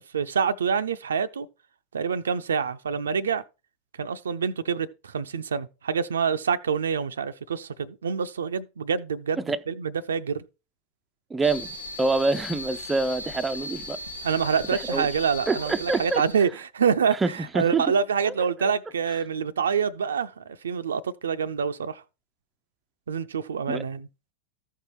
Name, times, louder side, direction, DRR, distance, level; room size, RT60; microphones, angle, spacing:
voice 1, 0.0-1.5 1.9-3.4 4.0-10.4 14.2-22.0 23.1-24.1, right 6 dB, 70° right, 0.5 m, -26 dB
voice 2, 11.3-11.7 12.0-14.0 14.9-15.1 15.5-16.2 17.2-17.3 17.5-17.8 18.3-18.4 18.6-18.7 23.7-23.8, right 3 dB, 15° right, 0.4 m, -25 dB
sound 1, 11.4-16.4, left 2 dB, 80° left, 1.1 m, -38 dB
14.5 x 5.5 x 3.2 m
figure-of-eight pair, 90°, 0 cm